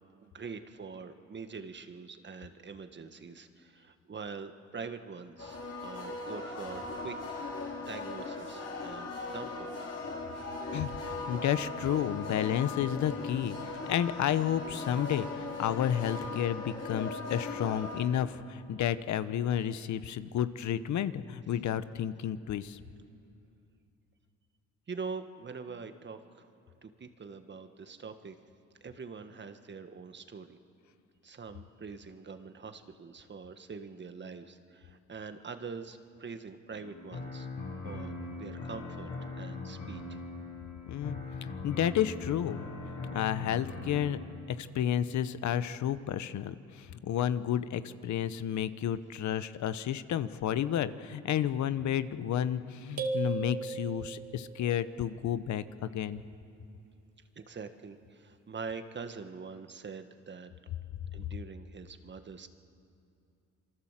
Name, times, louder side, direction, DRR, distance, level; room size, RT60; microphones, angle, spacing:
voice 1, 0.2-7.1 7.8-9.7 24.9-26.5 26.8-28.4 28.8-30.6 31.2-37.5 37.8-40.2 57.3-60.5 61.1-62.5, right 5 dB, 35° right, 8 dB, 1.7 m, -44 dB
sound 1, 5.4-18.0, left 3 dB, 55° left, 5.3 m, -39 dB
voice 2, 10.7-22.8 40.9-42.7 43.1-44.2 44.6-56.2, left 10 dB, 70° left, 13 dB, 1.0 m, -31 dB
sound 2, 36.7-44.3, left 3 dB, 90° left, 7.6 m, -41 dB
sound 3, 53.0-54.5, right 5 dB, 55° right, 2.5 m, -35 dB
27.5 x 23.0 x 7.5 m, 2.5 s
cardioid pair, 90°, 30 cm